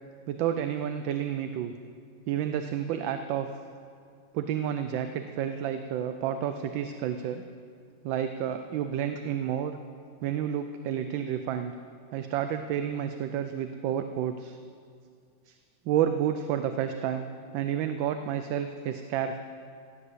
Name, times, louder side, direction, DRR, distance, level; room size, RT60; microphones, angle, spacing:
voice 1, 0.3-1.7 2.3-3.5 4.3-7.4 8.0-9.8 10.2-11.7 12.1-14.6 15.5-15.6 15.9-17.3 17.5-19.4, right 9 dB, 75° right, 8 dB, 1.3 m, -30 dB
15.5 x 9.4 x 8.0 m, 2.2 s
omnidirectional pair, 2.2 m